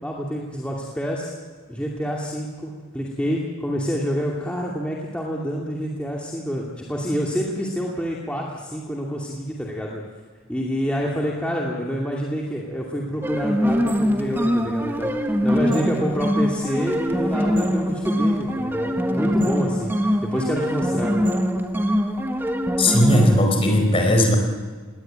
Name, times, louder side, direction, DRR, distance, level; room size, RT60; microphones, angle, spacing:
voice 1, 0.0-1.3 1.7-10.0 10.5-15.1 15.4-19.9 20.2-21.1, equal, 5° left, -3 dB, 2.5 m, -27 dB
sound 1, 13.2-23.4, equal, 10° right, 1.3 m, -23 dB
voice 2, 22.8-24.4, left 1 dB, 25° left, 3 dB, 4.6 m, -17 dB
21.0 x 18.5 x 8.8 m, 1.4 s
head